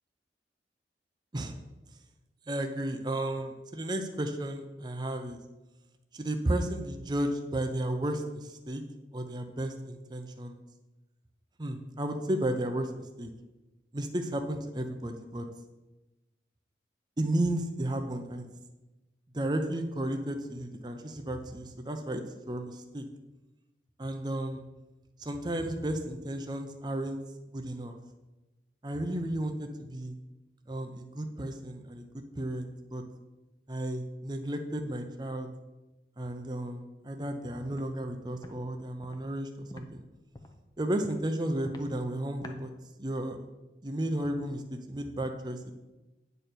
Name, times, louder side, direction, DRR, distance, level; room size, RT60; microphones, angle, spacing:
voice 1, 2.5-5.4 6.1-8.8 9.1-10.6 11.6-12.9 13.2-13.3 13.9-15.5 17.2-18.5 19.3-23.1 24.0-24.6 25.2-27.2 27.5-28.0 28.8-30.1 30.7-33.0 33.7-35.5 36.2-40.0 40.8-42.7 43.0-43.4 43.8-45.7, right 1 dB, 25° right, 5 dB, 0.6 m, -33 dB
Walk footsteps, 37.7-37.9 38.3-38.5 39.0-39.2 39.7-39.8 40.3-40.6 41.0-41.2 41.6-41.9 42.4-42.6, left 2 dB, 20° left, 0.7 m, -45 dB
8.9 x 4.4 x 6.7 m, 1.1 s
head